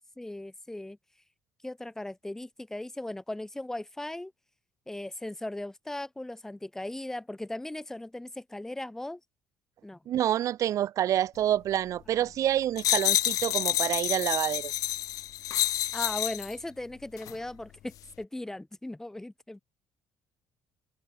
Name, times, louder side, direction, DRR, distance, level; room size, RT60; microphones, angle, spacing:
voice 1, 0.2-1.0 1.6-4.3 4.9-9.2 9.8-10.0 12.2-12.3 15.9-19.6, left 1 dB, 5° left, 6.5 m, -38 dB
voice 2, 10.1-14.7, right 11 dB, 55° right, 8.0 m, -27 dB
sound 1, 12.8-16.5 17.2-17.4, left 13 dB, 65° left, 4.0 m, -28 dB
cardioid pair, 140°, 7 cm